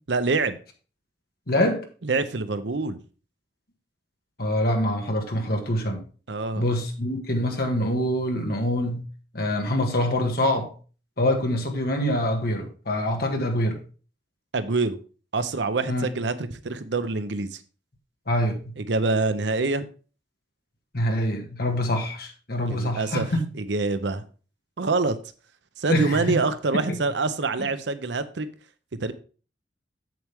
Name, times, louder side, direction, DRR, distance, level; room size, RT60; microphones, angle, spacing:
voice 1, 0.1-0.6 2.0-3.0 6.3-6.6 14.5-15.0 15.3-17.6 18.8-19.9 22.7-23.3 23.5-24.2 24.8-25.2 25.8-28.5 29.0-29.1, right 3 dB, 80° right, 0.8 m, -26 dB
voice 2, 1.5-1.8 4.4-6.0 6.6-9.0 9.3-10.7 11.2-13.8 15.9-16.1 18.3-18.7 20.9-23.5 25.9-26.4 26.9-27.0, left 1 dB, 60° left, 1.9 m, -25 dB
7.7 x 7.6 x 3.5 m
head